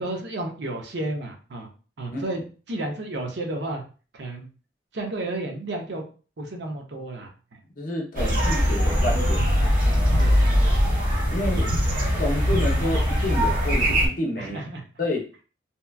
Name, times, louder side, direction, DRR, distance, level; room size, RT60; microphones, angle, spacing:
voice 1, 0.0-1.7 2.0-2.4 2.7-3.8 4.1-4.5 4.9-6.0 6.4-7.6 8.2-8.3 10.2-10.6 11.6-11.7 14.4-14.8, right 2 dB, 70° right, 2 dB, 0.6 m, -32 dB
voice 2, 7.8-9.6 9.9-10.3 11.3-11.8 12.2-14.6 15.0-15.2, left 1 dB, 50° left, 1 dB, 0.6 m, -29 dB
sound 1, 8.2-14.1, equal, 45° right, 0.9 m, -21 dB
2.8 x 2.2 x 2.3 m, 0.36 s
head